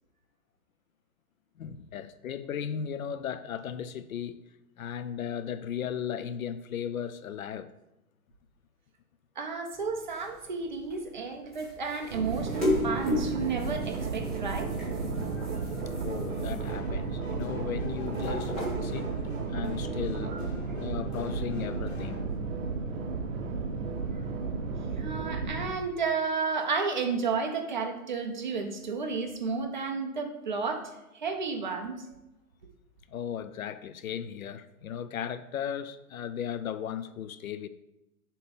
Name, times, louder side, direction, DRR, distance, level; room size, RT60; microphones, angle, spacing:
voice 1, 1.6-4.4 4.8-7.7 15.9-18.5 18.8-19.1 19.5-20.4 20.8-22.3 33.1-37.7, left 8 dB, 65° left, 0.5 m, -36 dB
voice 2, 9.4-14.7 20.3-20.4 25.0-32.1, right 4 dB, 30° right, 0.5 m, -32 dB
sound 1, 9.7-19.3, left 1 dB, ahead, 1.3 m, -36 dB
sound 2, 12.1-25.7, right 4 dB, 60° right, 0.9 m, -33 dB
sound 3, 15.0-22.2, left 2 dB, 45° left, 1.6 m, -45 dB
7.0 x 3.0 x 5.2 m
hypercardioid pair, 165°, 45 cm